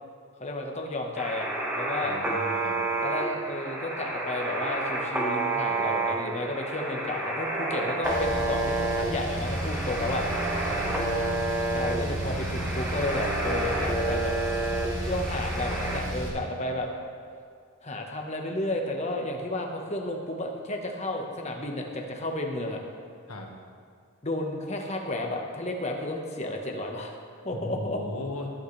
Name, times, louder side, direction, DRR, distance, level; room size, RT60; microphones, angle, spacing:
voice 1, 0.4-2.2 3.0-10.2 11.7-14.3 15.0-16.9 17.8-22.8 24.2-27.1 27.4-28.0, left 1 dB, 30° left, 2 dB, 1.2 m, -32 dB
sound 1, 1.2-16.0, right 2 dB, 10° right, 1.4 m, -30 dB
voice 2, 2.0-2.8 10.7-10.9 23.3-23.5 27.5-28.5, left 1 dB, 85° left, 0 dB, 1.6 m, -37 dB
Car, 8.0-16.3, right 1 dB, 60° right, 3.2 m, -33 dB
19.0 x 8.6 x 3.3 m, 2.1 s
head